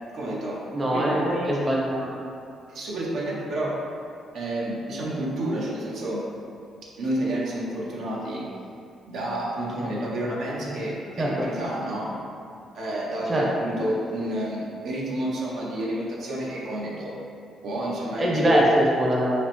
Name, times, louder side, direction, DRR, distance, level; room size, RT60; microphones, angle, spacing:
voice 1, 0.1-0.6 0.9-1.6 2.7-3.7 4.3-6.2 7.0-8.5 9.1-12.1 12.7-17.1 17.6-18.7, right 1 dB, 75° right, -5 dB, 0.6 m, -29 dB
voice 2, 0.7-2.1 11.2-11.5 13.3-13.4 18.2-19.3, equal, 30° right, -3 dB, 0.7 m, -23 dB
5.9 x 2.0 x 2.9 m, 2.5 s
cardioid pair, 90°, 0 cm